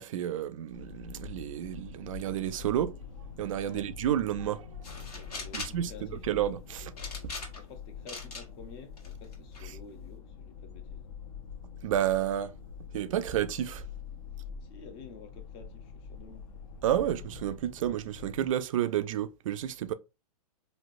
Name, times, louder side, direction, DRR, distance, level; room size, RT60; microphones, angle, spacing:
voice 1, 0.0-3.0 3.4-4.7 5.5-5.9 6.2-6.9 7.2-7.3 11.8-12.5 12.9-13.8 16.8-19.9, right 11 dB, 60° right, 0.4 m, -30 dB
sound 1, 0.7-18.5, left 7 dB, 60° left, 0.8 m, -45 dB
sound 2, 4.8-5.8 7.0-7.7 8.1-8.5 9.0-9.6, left 3 dB, 85° left, 1.7 m, -40 dB
voice 2, 5.1-6.3 7.5-11.1 14.6-16.4, left 5 dB, 25° left, 0.5 m, -50 dB
3.2 x 2.8 x 2.4 m
hypercardioid pair, 145°, 19 cm